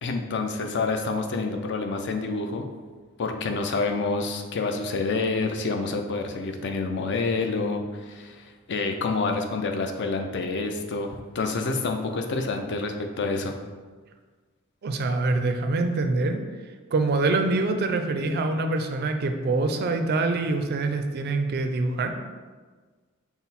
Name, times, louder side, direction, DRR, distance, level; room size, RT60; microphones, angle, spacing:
voice 1, 0.0-2.6 3.2-13.5, left 3 dB, 55° left, 4 dB, 0.4 m, -28 dB
voice 2, 14.8-16.4 16.9-22.1, right 3 dB, 50° right, 6 dB, 0.4 m, -25 dB
5.9 x 2.0 x 4.1 m, 1.4 s
head